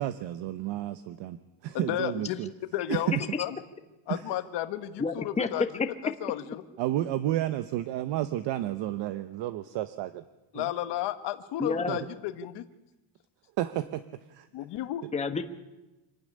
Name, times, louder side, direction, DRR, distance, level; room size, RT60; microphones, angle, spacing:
voice 1, 0.0-2.5 2.9-3.2 4.1-4.2 6.8-10.2 10.5-10.7 11.9-12.0 13.6-14.0 14.3-14.5, right 13 dB, 60° right, 11 dB, 1.1 m, -31 dB
voice 2, 1.7-2.4 2.7-3.6 4.1-5.6 6.0-6.6 10.5-12.6 14.5-15.0, left 12 dB, 55° left, 9 dB, 1.4 m, -33 dB
voice 3, 5.0-5.5 11.6-12.0 15.1-15.4, left 4 dB, 15° left, 6 dB, 1.2 m, -29 dB
26.0 x 12.0 x 9.9 m, 1.0 s
cardioid pair, 145°, 48 cm